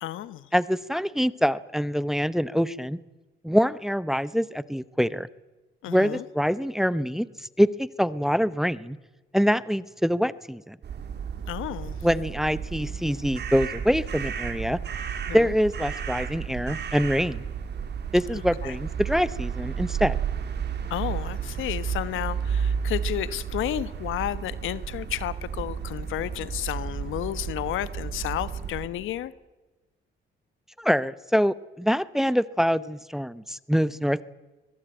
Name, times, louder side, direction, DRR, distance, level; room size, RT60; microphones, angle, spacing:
voice 1, 0.0-0.5 5.8-6.2 11.5-12.0 15.3-15.5 18.6-18.8 20.9-29.3, left 13 dB, 85° left, 15 dB, 1.3 m, -32 dB
voice 2, 0.5-3.0 3.4-5.3 5.9-7.3 7.6-9.0 9.3-10.8 12.0-14.8 15.3-17.4 18.1-20.2 30.8-34.2, equal, ahead, 17 dB, 0.9 m, -25 dB
sound 1, 10.8-28.9, right 7 dB, 60° right, 3.9 m, -32 dB
23.5 x 21.0 x 9.1 m, 1.2 s
cardioid pair, 90°, 20 cm